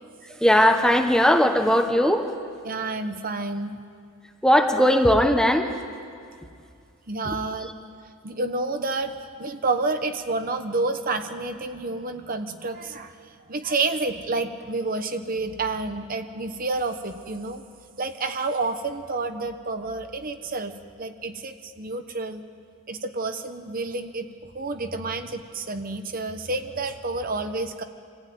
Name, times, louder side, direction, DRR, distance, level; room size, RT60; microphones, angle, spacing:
voice 1, 0.4-2.3 4.4-5.7 7.2-7.3, equal, 5° left, 5 dB, 1.1 m, -19 dB
voice 2, 2.6-3.8 7.1-7.7 8.2-17.6 18.0-22.4 22.9-24.3 24.5-27.8, right 3 dB, 40° right, 7 dB, 1.0 m, -29 dB
25.5 x 15.5 x 9.4 m, 2.3 s
head